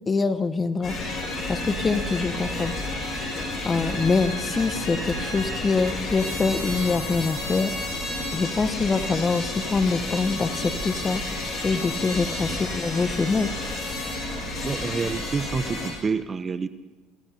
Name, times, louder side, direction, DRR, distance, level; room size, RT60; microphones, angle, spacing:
voice 1, 0.1-1.0 1.5-2.7 3.6-7.7 8.3-11.2 11.6-13.5, left 4 dB, 25° left, 12 dB, 0.9 m, -24 dB
sound 1, 0.8-15.9, left 2 dB, 45° left, 6.1 m, -31 dB
voice 2, 14.6-16.7, right 5 dB, 30° right, 12 dB, 0.7 m, -28 dB
26.5 x 16.0 x 2.8 m, 1.2 s
supercardioid pair, 85°, 0 cm